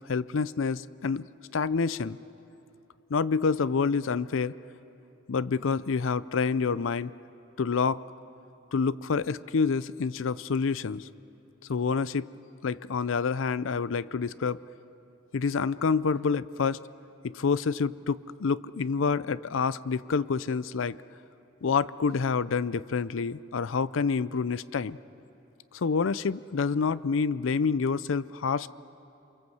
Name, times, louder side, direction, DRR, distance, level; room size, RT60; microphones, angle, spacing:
voice 1, 0.1-1.2 1.5-2.2 3.1-4.6 5.3-7.1 7.6-8.0 8.7-11.1 11.7-12.3 12.6-14.6 15.3-16.8 17.2-21.0 21.6-25.0 25.7-28.7, left 5 dB, 70° left, 18 dB, 0.5 m, -27 dB
28.0 x 24.0 x 7.9 m, 2.8 s
head